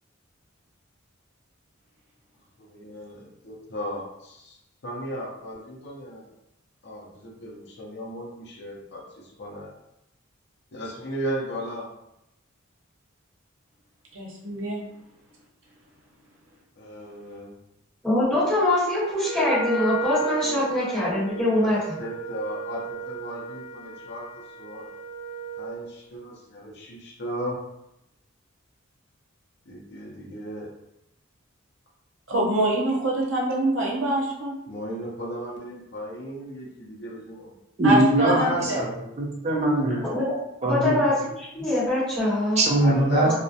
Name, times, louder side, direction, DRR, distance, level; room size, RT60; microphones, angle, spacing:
voice 1, 2.6-4.6 4.8-6.3 6.8-9.7 10.7-11.9 16.8-17.5 20.4-20.6 21.5-21.7 22.0-24.9 25.6-27.6 29.7-30.7 34.7-37.5 38.1-38.8 42.7-43.3, equal, 55° left, -3 dB, 0.5 m, -35 dB
voice 2, 14.1-14.8 32.3-34.5 37.8-38.8, right 1 dB, 70° right, -3 dB, 0.7 m, -24 dB
voice 3, 18.0-22.0 40.1-40.2 40.6-42.6 43.3-43.4, left 1 dB, 5° left, -13 dB, 1.3 m, -23 dB
Wind instrument woodwind instrument, 19.2-25.8, right 4 dB, 20° left, 1.1 m, -34 dB
voice 4, 37.8-40.1 40.6-41.0 42.6-43.3, right 1 dB, 35° right, -1 dB, 0.5 m, -22 dB
2.4 x 2.0 x 2.6 m, 0.84 s
head